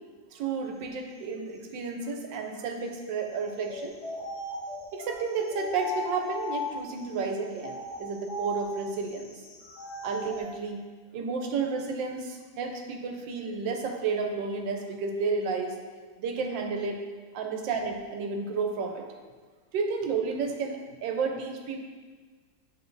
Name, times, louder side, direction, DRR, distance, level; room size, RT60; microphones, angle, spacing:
voice 1, 0.3-4.0 4.9-9.4 10.0-10.8 11.1-15.7 16.2-17.0 17.3-19.1 19.7-21.8, right 4 dB, 80° right, 3 dB, 1.4 m, -31 dB
sound 1, 3.6-7.0 7.6-10.5, left 1 dB, 55° left, 0.8 m, -37 dB
7.8 x 3.7 x 3.9 m, 1.5 s
omnidirectional pair, 2.0 m